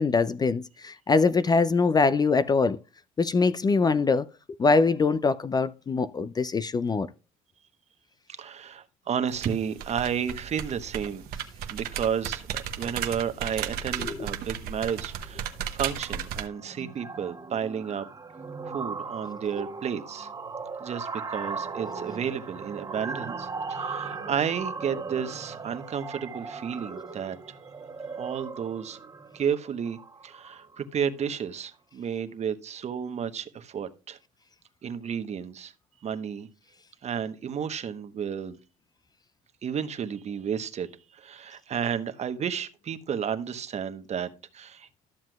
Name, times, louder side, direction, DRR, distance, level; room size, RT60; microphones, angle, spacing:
voice 1, 0.0-2.8 3.2-4.3 4.6-7.1 14.0-14.2, left 4 dB, 25° left, 0.4 m, -23 dB
voice 2, 8.4-11.2 11.7-18.1 18.6-20.3 20.8-27.6 28.2-29.0 29.3-30.0 30.2-34.2 34.8-35.7 36.0-36.5 37.0-38.6 39.6-44.9, right 7 dB, 40° right, 1.0 m, -32 dB
sound 1, 9.3-16.5, right 9 dB, 65° right, 1.1 m, -35 dB
sound 2, 14.9-15.1 15.4-15.6 15.9-30.8, right 4 dB, 25° right, 1.2 m, -38 dB
13.0 x 7.3 x 2.3 m
hypercardioid pair, 70°, 17 cm